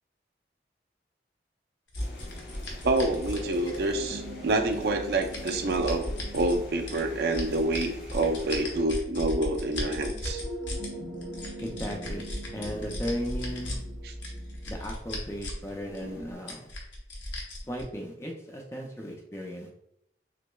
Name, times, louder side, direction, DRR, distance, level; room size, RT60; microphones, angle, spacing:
sound 1, 1.9-4.1 4.7-6.6 6.9-10.9 11.2-13.8 14.2-15.7 15.9-16.0 16.5-17.8, left 1 dB, 85° left, 0.9 m, -36 dB
sound 2, 2.0-8.8, left 1 dB, 50° left, 0.8 m, -43 dB
sound 3, 2.5-16.3, equal, 25° right, 0.7 m, -42 dB
voice 1, 2.8-10.4 14.0-14.1, right 2 dB, 60° right, 5 dB, 0.4 m, -27 dB
voice 2, 11.6-12.3 12.5-13.8 14.7-16.7 17.7-19.7, equal, 15° left, 1 dB, 0.4 m, -36 dB
5.9 x 2.1 x 2.2 m, 0.77 s
head